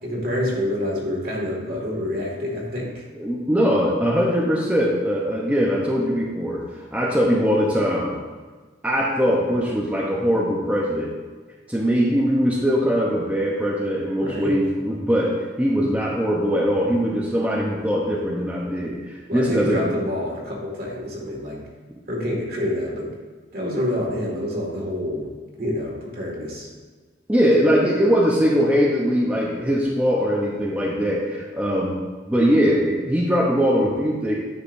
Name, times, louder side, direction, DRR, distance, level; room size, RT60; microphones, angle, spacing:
voice 1, 0.0-3.0 14.2-14.6 19.3-21.6 22.1-23.1 23.5-25.3 25.6-26.7, left 1 dB, 55° right, -3 dB, 2.1 m, -27 dB
voice 2, 3.2-6.6 6.9-8.1 8.8-11.1 11.7-15.3 15.6-19.8 27.3-31.9 32.3-34.3, equal, 10° right, -4 dB, 0.8 m, -21 dB
10.0 x 6.4 x 2.7 m, 1.4 s
head